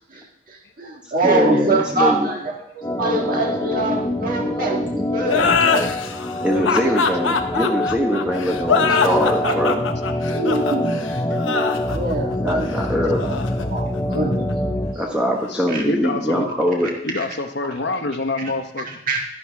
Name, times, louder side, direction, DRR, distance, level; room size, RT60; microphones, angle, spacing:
voice 1, 0.1-5.9 6.5-6.9 9.0-9.6 9.9-10.0 10.3-10.9 11.9-12.7 13.0-14.5 15.7-15.8 16.5-16.6 17.1-17.2 18.4-18.5 18.9-19.3, right 2 dB, 45° right, -1 dB, 1.7 m, -25 dB
voice 2, 1.2-2.3 6.4-9.8 12.4-13.3 14.9-16.9, equal, 5° right, -1 dB, 1.3 m, -22 dB
Organ, 2.8-15.0, left 1 dB, 15° left, 0.6 m, -25 dB
sound 1, 5.2-14.5, left 5 dB, 85° left, 0.9 m, -23 dB
voice 3, 15.5-16.5 17.0-19.0, left 3 dB, 60° left, 6 dB, 0.9 m, -27 dB
11.5 x 11.0 x 3.5 m, 0.76 s
head